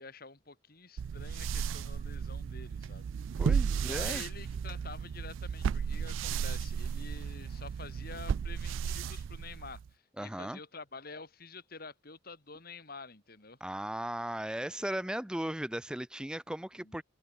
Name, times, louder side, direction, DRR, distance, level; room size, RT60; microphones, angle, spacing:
voice 1, 0.0-3.1 3.7-13.6 14.6-14.9 16.8-17.0, left 4 dB, 45° left, 2.9 m, -48 dB
sound 1, 1.0-9.9, right 7 dB, 70° right, 0.3 m, -34 dB
voice 2, 3.4-4.2 10.2-10.6 13.6-17.0, right 1 dB, 5° right, 0.5 m, -37 dB
head